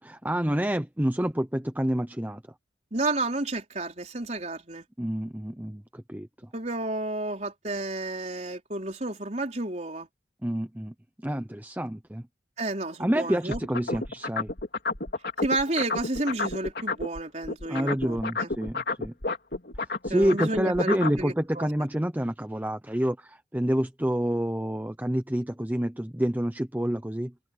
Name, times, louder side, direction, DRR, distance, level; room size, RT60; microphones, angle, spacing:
voice 1, 0.0-2.4 5.0-6.3 10.4-10.9 11.2-12.2 13.0-14.5 17.7-19.1 19.8-27.3, equal, 10° right, 0.8 m, -28 dB
voice 2, 2.9-4.8 6.5-10.1 12.6-13.6 13.9-14.0 15.4-18.5 20.1-21.7, right 2 dB, 40° right, 4.0 m, -31 dB
sound 1, 13.5-17.2 17.4-21.2, left 3 dB, 60° left, 2.9 m, -30 dB
head